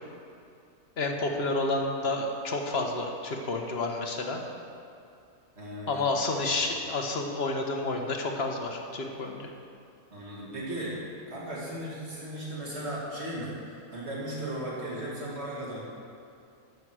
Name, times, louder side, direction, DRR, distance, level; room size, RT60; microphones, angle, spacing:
voice 1, 1.0-4.4 5.9-9.5, left 2 dB, 45° left, 3 dB, 1.3 m, -30 dB
voice 2, 5.6-6.2 10.1-15.8, right 1 dB, 45° right, -6 dB, 2.9 m, -36 dB
15.0 x 6.4 x 6.3 m, 2.5 s
omnidirectional pair, 1.6 m